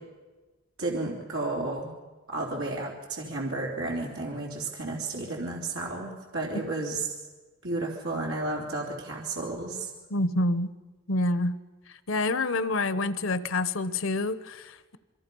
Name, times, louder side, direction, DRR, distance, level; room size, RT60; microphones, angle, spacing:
voice 1, 0.8-1.9 2.3-7.1 7.6-9.9, right 2 dB, 90° right, -1 dB, 3.4 m, -32 dB
voice 2, 10.1-10.7 11.1-11.5 12.1-15.0, left 2 dB, 65° left, 14 dB, 0.9 m, -27 dB
27.0 x 23.0 x 5.5 m, 1.2 s
head